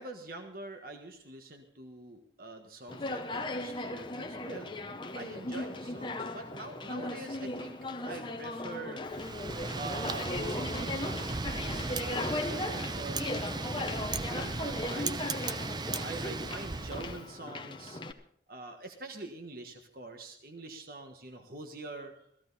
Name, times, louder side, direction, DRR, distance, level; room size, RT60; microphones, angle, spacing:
voice 1, 0.0-4.7 5.1-7.8 8.0-9.0 9.8-15.4 16.0-18.0 18.5-22.1, right 2 dB, 50° right, 5 dB, 1.4 m, -45 dB
Conversation, 2.9-18.1, left 2 dB, 25° left, 0.8 m, -38 dB
Wind, 9.1-17.2, right 3 dB, 25° right, 0.5 m, -36 dB
16.0 x 15.0 x 4.1 m, 0.68 s
head